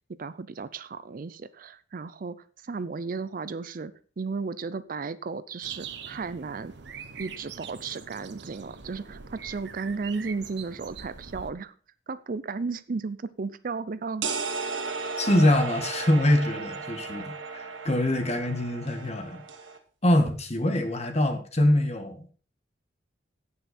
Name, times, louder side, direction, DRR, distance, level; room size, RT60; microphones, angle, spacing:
voice 1, 0.2-2.4 2.6-6.7 7.2-11.7 12.1-14.3, right 4 dB, 45° right, 15 dB, 0.5 m, -34 dB
sound 1, 5.6-11.5, right 6 dB, 65° right, 0.9 m, -43 dB
sound 2, 14.2-19.8, right 4 dB, 80° right, 1.5 m, -35 dB
voice 2, 15.2-19.4 20.0-22.3, left 1 dB, 35° left, 7 dB, 1.6 m, -24 dB
16.5 x 5.7 x 4.2 m, 0.40 s
head